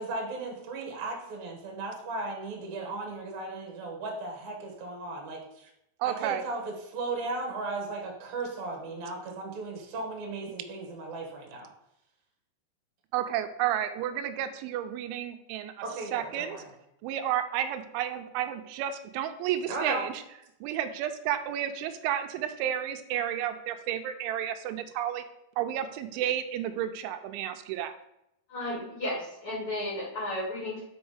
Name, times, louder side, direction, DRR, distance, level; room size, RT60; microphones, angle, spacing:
voice 1, 0.0-5.7 6.0-11.7 15.8-16.6 19.7-20.1, right 3 dB, 65° right, 1 dB, 1.9 m, -36 dB
voice 2, 6.0-6.4 13.1-15.7 16.1-16.6 17.0-20.2 20.6-25.2 25.6-27.9, right 10 dB, 85° right, 8 dB, 3.0 m, -31 dB
voice 3, 28.5-30.8, left 1 dB, 55° left, -5 dB, 1.5 m, -33 dB
6.3 x 5.4 x 4.9 m, 0.83 s
omnidirectional pair, 5.3 m